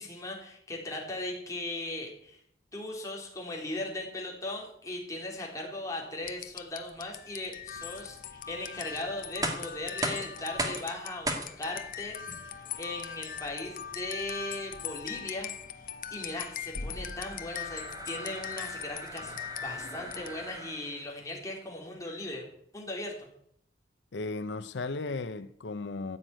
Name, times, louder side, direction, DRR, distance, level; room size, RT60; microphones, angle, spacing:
voice 1, 0.0-2.4 2.7-19.3 19.6-22.4 22.7-23.3, left 2 dB, 20° left, 3.8 m, -38 dB
sound 1, 6.2-20.7, left 8 dB, 50° left, 0.9 m, -41 dB
sound 2, 9.2-21.1, right 1 dB, 20° right, 2.0 m, -40 dB
voice 2, 24.1-26.2, left 3 dB, 85° left, 0.7 m, -35 dB
14.5 x 7.9 x 8.9 m
head